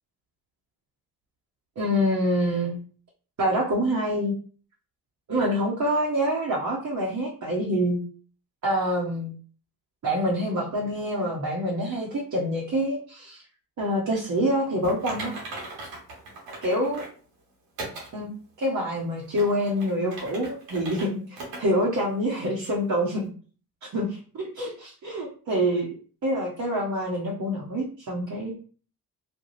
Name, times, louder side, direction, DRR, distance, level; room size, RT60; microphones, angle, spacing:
voice 1, 1.8-2.8 3.4-4.3 5.3-8.0 8.6-9.3 10.0-13.4 13.8-15.3 16.6-17.0 18.1-18.3 18.6-23.3 23.9-25.9 26.2-28.5, equal, 40° right, -3 dB, 0.9 m, -26 dB
Typing, 14.8-17.2 17.8-18.1 18.6-18.7 19.2-21.1 21.4-21.6 22.0-22.1 22.6-22.7, right 2 dB, 85° right, 1.1 m, -38 dB
2.4 x 2.2 x 3.1 m, 0.40 s
hypercardioid pair, 50°, 45 cm